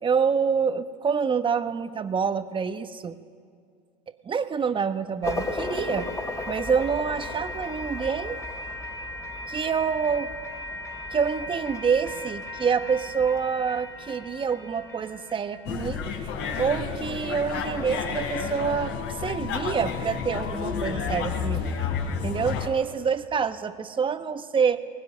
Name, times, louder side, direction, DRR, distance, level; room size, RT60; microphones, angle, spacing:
voice 1, 0.0-3.2 4.2-6.1 6.5-8.4 9.5-10.3 11.1-16.2 16.6-21.7 22.2-24.8, right 6 dB, 25° right, 10 dB, 1.2 m, -27 dB
sound 1, 5.2-16.4, left 2 dB, 15° left, 2.7 m, -35 dB
sound 2, 15.7-22.7, left 6 dB, 55° left, 3.7 m, -30 dB
20.0 x 18.5 x 9.6 m, 2.1 s
hypercardioid pair, 95°, 21 cm